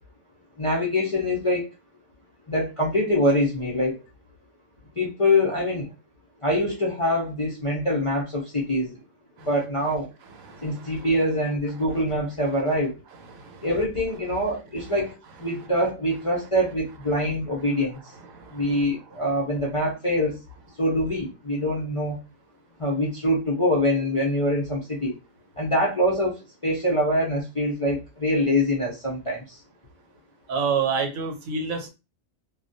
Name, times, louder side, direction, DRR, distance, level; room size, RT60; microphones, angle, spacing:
voice 1, 0.6-1.7 2.5-4.0 5.0-5.9 6.4-9.0 9.4-10.1 10.6-13.0 13.6-18.0 18.5-20.4 20.8-22.2 22.8-25.2 25.6-29.6, left 1 dB, 45° left, 0.4 m, -24 dB
voice 2, 30.5-31.9, right 6 dB, 85° right, 1.1 m, -26 dB
2.3 x 2.2 x 2.5 m
omnidirectional pair, 1.4 m